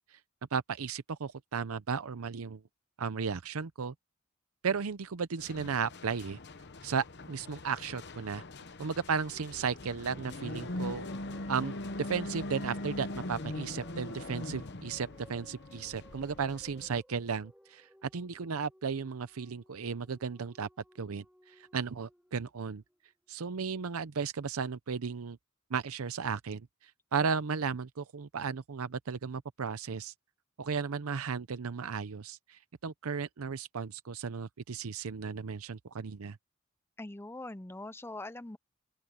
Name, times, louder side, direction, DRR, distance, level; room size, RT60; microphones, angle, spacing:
voice 1, 0.5-2.6 3.0-3.9 4.6-6.4 6.8-8.4 8.8-11.1 11.5-11.7 12.0-20.7 21.0-22.8 23.3-25.4 25.7-30.1 30.6-36.4, right 5 dB, 90° right, 0.6 m, -35 dB
sound 1, 5.4-17.0, left 2 dB, 50° left, 1.0 m, -41 dB
sound 2, 8.8-23.3, equal, 5° right, 2.4 m, -61 dB
voice 2, 37.0-38.6, left 2 dB, 10° left, 0.6 m, -42 dB
open air
head